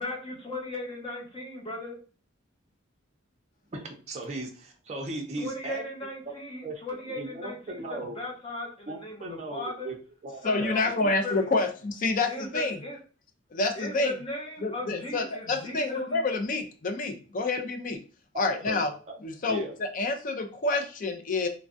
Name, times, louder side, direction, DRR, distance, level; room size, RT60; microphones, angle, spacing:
voice 1, 0.0-2.0 5.4-9.9 10.4-11.5 12.3-13.0 13.8-16.2, left 1 dB, 25° left, -1 dB, 0.9 m, -37 dB
voice 2, 3.7-5.8 6.3-6.4 6.6-8.2 8.9-9.9 10.2-11.4 18.3-19.2 19.5-19.7, right 2 dB, 35° right, 1 dB, 0.5 m, -38 dB
voice 3, 10.4-12.8 13.5-14.1 14.6-18.0 18.4-18.9 19.2-21.5, left 3 dB, 40° left, 5 dB, 0.4 m, -28 dB
3.3 x 2.2 x 2.6 m, 0.37 s
head